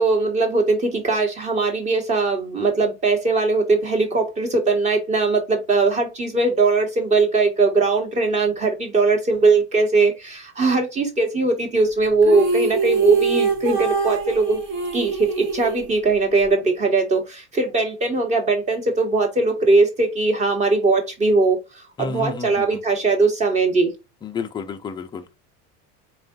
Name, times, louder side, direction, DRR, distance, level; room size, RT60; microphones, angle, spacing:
voice 1, 0.0-14.6 14.9-23.9, right 3 dB, 20° right, 1.3 m, -20 dB
sound 1, 12.2-16.5, right 5 dB, 35° right, 1.0 m, -23 dB
voice 2, 22.0-22.8 24.2-25.3, left 4 dB, 15° left, 0.4 m, -31 dB
4.6 x 2.5 x 3.7 m
cardioid pair, 160°, 34 cm